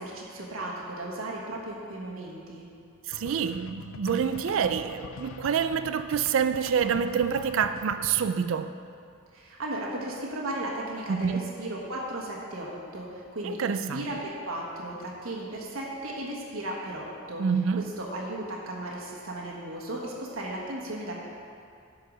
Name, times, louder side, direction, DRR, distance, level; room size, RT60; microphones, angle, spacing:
voice 1, 0.0-2.7 9.3-17.4 18.0-21.3, right 1 dB, 85° right, 1.4 m, -35 dB
sound 1, 3.1-8.3, left 6 dB, 75° left, 0.3 m, -44 dB
voice 2, 3.1-8.8 11.1-11.5 13.4-14.1 17.4-17.9, right 7 dB, 70° right, 0.4 m, -27 dB
11.0 x 4.8 x 6.5 m
head